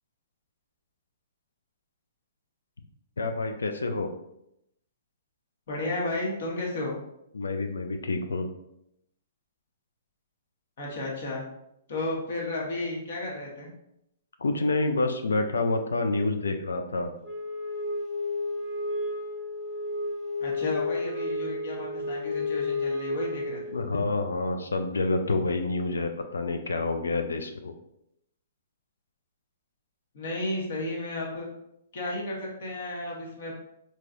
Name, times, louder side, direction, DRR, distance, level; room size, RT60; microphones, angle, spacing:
voice 1, 3.2-4.1 7.3-8.5 14.4-17.1 23.7-27.7, left 3 dB, 70° left, 6 dB, 0.4 m, -28 dB
voice 2, 5.7-7.0 10.8-11.4 11.9-13.7 20.4-23.8 30.1-31.5 31.9-33.6, left 2 dB, 55° left, -2 dB, 1.3 m, -33 dB
Wind instrument woodwind instrument, 17.2-24.0, left 2 dB, 10° left, 1.4 m, -32 dB
4.6 x 2.9 x 2.5 m, 0.79 s
figure-of-eight pair, 115°, 0 cm